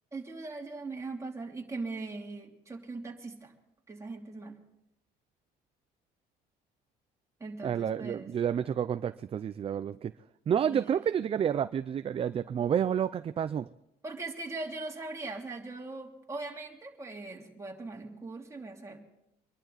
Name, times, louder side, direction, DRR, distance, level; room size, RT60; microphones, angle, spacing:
voice 1, 0.1-3.5 3.9-4.6 7.4-8.3 10.6-11.0 14.0-19.0, right 3 dB, 15° right, -1 dB, 3.0 m, -40 dB
voice 2, 7.6-10.1 10.5-13.7, right 8 dB, 35° right, 12 dB, 0.4 m, -30 dB
25.0 x 11.5 x 4.1 m, 0.84 s
cardioid pair, 110°, 17 cm